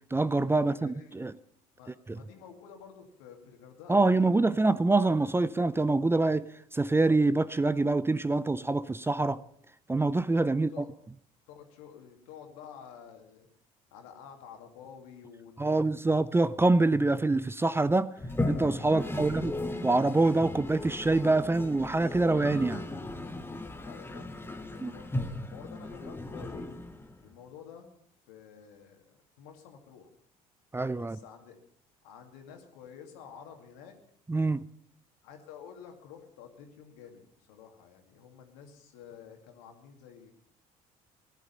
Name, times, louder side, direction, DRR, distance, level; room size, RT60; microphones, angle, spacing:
voice 1, 0.1-1.3 3.9-9.4 9.9-10.7 15.6-18.1 18.5-19.5 19.8-22.8 24.8-24.9 30.7-31.2 34.3-34.6, right 2 dB, 15° right, 0.5 m, -25 dB
voice 2, 0.7-1.3 1.8-4.5 10.5-10.9 11.5-13.5 13.9-16.2 18.8-19.3 23.7-26.7 27.2-27.9 28.3-29.1 29.4-30.1 31.0-31.6 32.0-34.0 35.2-40.3, left 7 dB, 75° left, 2.3 m, -50 dB
Toilet flush, 18.2-27.3, left 2 dB, 10° left, 1.5 m, -37 dB
17.0 x 11.0 x 5.6 m
hypercardioid pair, 60°, 18 cm